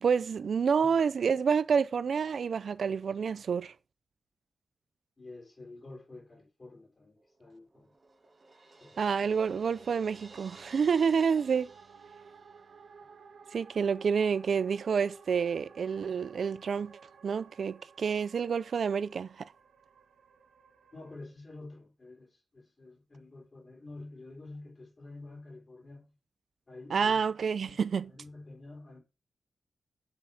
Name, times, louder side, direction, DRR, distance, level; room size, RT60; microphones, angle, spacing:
voice 1, 0.0-3.7 9.0-11.7 13.5-19.5 26.9-28.1, right 6 dB, 65° right, 0.4 m, -28 dB
voice 2, 5.2-7.9 8.8-9.3 20.9-26.2 26.7-27.2 27.6-29.0, left 2 dB, 30° left, 4.0 m, -49 dB
Crash cymbal, 7.2-12.9, right 2 dB, 30° right, 1.6 m, -56 dB
sound 1, 9.2-21.2, right 6 dB, 90° right, 1.3 m, -55 dB
7.9 x 5.8 x 7.0 m
wide cardioid pair, 155°, 0 cm